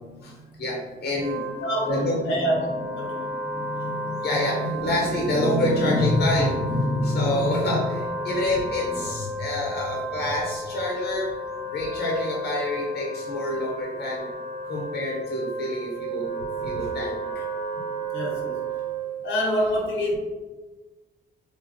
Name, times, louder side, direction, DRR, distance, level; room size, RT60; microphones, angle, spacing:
voice 1, 0.1-2.3 3.0-11.3 11.7-14.3 14.6-16.3 16.6-17.4 17.9-18.0, left 1 dB, 55° left, -2 dB, 1.0 m, -27 dB
Wind instrument woodwind instrument, 1.1-19.2, right 1 dB, 30° right, 1.0 m, -33 dB
voice 2, 1.6-3.2 18.1-18.6 19.2-20.2, equal, 80° left, -2 dB, 1.2 m, -26 dB
3.4 x 2.8 x 3.7 m, 1.2 s
cardioid pair, 90°, 20 cm